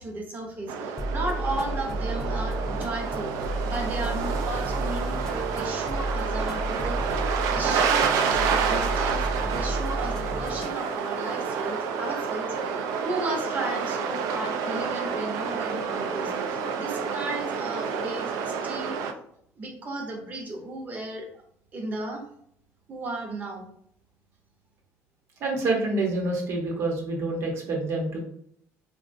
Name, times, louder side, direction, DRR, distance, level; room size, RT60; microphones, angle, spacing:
voice 1, 0.0-3.3 3.6-7.0 7.5-19.0 19.6-21.4 21.7-22.2 22.9-23.6, right 2 dB, 30° right, 2 dB, 0.7 m, -35 dB
sound 1, 0.7-19.1, right 6 dB, 75° right, 0.3 m, -29 dB
sound 2, 1.0-10.8, right 1 dB, 10° left, 0.3 m, -32 dB
voice 2, 25.4-28.2, right 2 dB, 55° right, 0 dB, 0.9 m, -27 dB
3.6 x 2.2 x 2.5 m, 0.69 s
cardioid pair, 140°, 6 cm